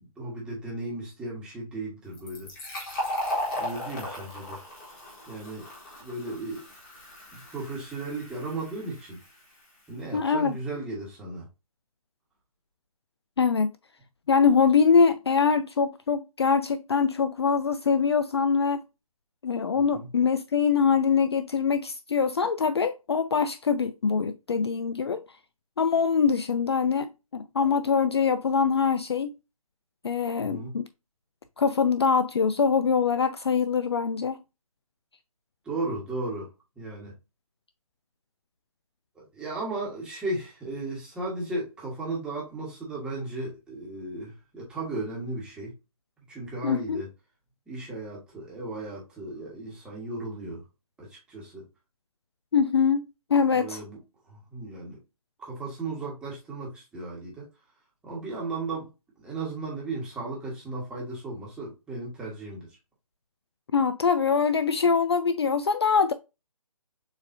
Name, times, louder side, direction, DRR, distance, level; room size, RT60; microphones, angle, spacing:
voice 1, 0.0-2.5 3.6-4.6 5.3-5.7 6.0-6.6 7.3-9.2 9.9-11.5 19.9-20.1 30.4-30.7 35.6-37.1 39.1-45.7 46.3-47.1 47.7-50.6 51.0-51.6 53.5-54.0 54.3-55.0 55.4-57.5 58.0-62.8, right 2 dB, 5° right, 1.2 m, -35 dB
Fill (with liquid), 2.1-9.5, left 1 dB, 15° left, 1.5 m, -36 dB
voice 2, 10.1-10.5 13.4-13.7 14.3-18.8 19.4-25.2 25.8-29.3 30.0-30.9 31.6-34.4 46.6-47.0 52.5-53.8 63.7-66.1, left 6 dB, 45° left, 0.4 m, -23 dB
6.9 x 2.6 x 2.6 m
figure-of-eight pair, 160°, 19 cm